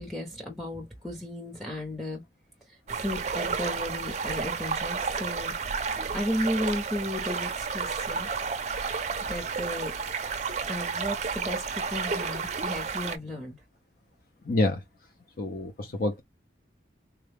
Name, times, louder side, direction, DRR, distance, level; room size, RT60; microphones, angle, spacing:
voice 1, 0.0-2.2 2.7-5.5 6.1-8.3 9.3-9.9 10.7-13.6, left 1 dB, ahead, 0.8 m, -34 dB
sound 1, 2.9-13.2, right 5 dB, 40° right, 0.5 m, -31 dB
voice 2, 14.4-14.8 15.4-16.2, left 2 dB, 50° left, 0.6 m, -27 dB
3.8 x 2.3 x 3.3 m
head